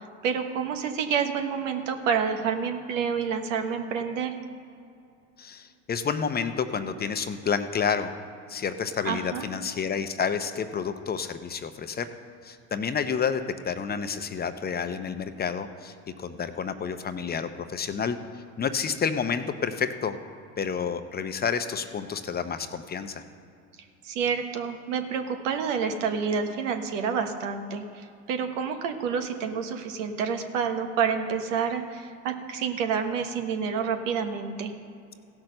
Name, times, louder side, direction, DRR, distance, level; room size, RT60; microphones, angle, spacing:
voice 1, 0.2-4.3 9.0-9.4 24.0-34.7, right 6 dB, 85° right, 6 dB, 1.2 m, -28 dB
voice 2, 5.4-8.1 8.5-12.1 12.4-18.2 18.6-20.2 20.6-23.2, left 6 dB, 25° left, 9 dB, 0.7 m, -29 dB
15.5 x 6.1 x 6.6 m, 2.5 s
supercardioid pair, 90°, 37 cm